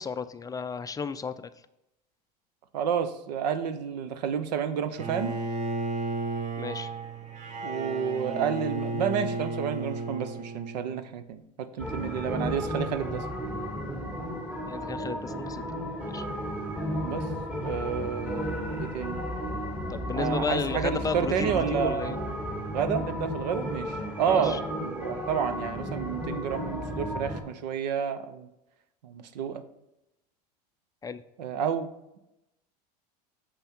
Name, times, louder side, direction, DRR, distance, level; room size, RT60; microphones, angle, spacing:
voice 1, 0.0-1.5 6.6-6.9 14.7-15.6 16.0-16.2 19.9-22.2 24.3-24.6 31.0-31.2, left 5 dB, 15° left, 11 dB, 0.4 m, -33 dB
voice 2, 2.7-5.4 7.6-13.2 17.0-17.3 17.6-19.2 20.1-22.3 22.7-28.5 29.0-29.6 31.4-31.9, right 7 dB, 85° right, 11 dB, 0.8 m, -30 dB
Bowed string instrument, 5.0-11.1, right 2 dB, 35° right, 1.0 m, -33 dB
sound 1, 11.8-27.4, equal, 5° right, 1.4 m, -33 dB
6.9 x 5.6 x 4.4 m, 0.89 s
hypercardioid pair, 95°, 21 cm